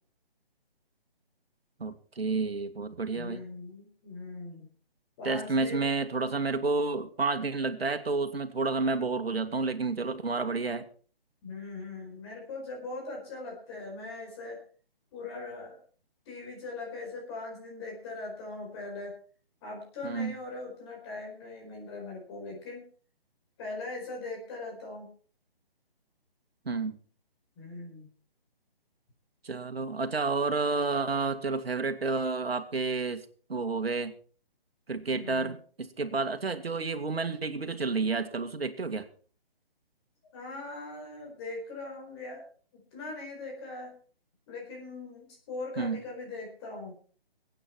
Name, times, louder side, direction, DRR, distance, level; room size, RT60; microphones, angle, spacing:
voice 1, 1.8-3.4 5.2-10.9 20.0-20.3 26.7-27.0 29.4-34.1 34.9-39.1 45.8-46.0, right 3 dB, 85° right, 7 dB, 2.1 m, -30 dB
voice 2, 3.1-4.6 5.2-5.9 11.4-14.6 15.1-15.8 16.3-19.2 19.6-22.8 23.6-25.1 27.6-28.1 35.1-35.5 40.2-42.4 42.9-43.9 44.5-46.9, left 3 dB, 25° left, 0 dB, 4.5 m, -40 dB
23.0 x 9.0 x 4.5 m, 0.42 s
hypercardioid pair, 155°, 30 cm